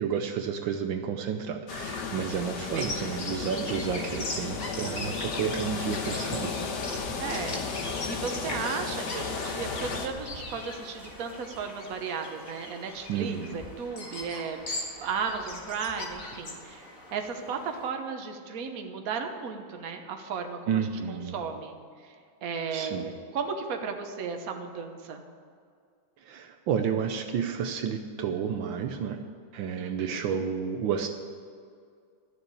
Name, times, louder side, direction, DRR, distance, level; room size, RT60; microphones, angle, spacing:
voice 1, 0.0-6.7 13.1-13.6 20.7-21.4 22.7-23.1 26.2-29.2 29.5-31.1, right 7 dB, 75° right, 6 dB, 1.4 m, -31 dB
sound 1, 1.7-10.1, left 5 dB, 60° left, 1.6 m, -34 dB
voice 2, 2.6-3.2 7.2-14.7 15.0-21.7 22.4-25.2 29.8-30.3, right 5 dB, 50° right, 4 dB, 1.4 m, -35 dB
Bird vocalization bird call bird song, 2.7-17.9, left 2 dB, 45° left, 2.0 m, -40 dB
13.0 x 6.9 x 8.5 m, 2.2 s
omnidirectional pair, 2.2 m